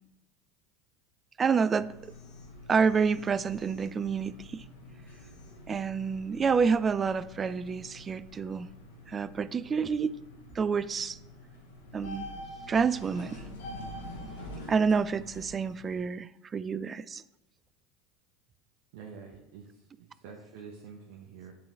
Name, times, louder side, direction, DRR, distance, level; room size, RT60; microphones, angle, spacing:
voice 1, 1.4-1.9 2.7-4.6 5.7-8.7 9.1-10.2 10.6-11.2 11.9-12.3 12.7-13.4 14.7-17.2, right 5 dB, 30° right, 0.3 m, -28 dB
sound 1, 1.6-16.0, left 1 dB, 80° left, 1.3 m, -46 dB
voice 2, 18.9-19.6 20.0-21.5, right 6 dB, 65° right, 0.9 m, -47 dB
8.7 x 3.8 x 4.5 m
hypercardioid pair, 85°, 0 cm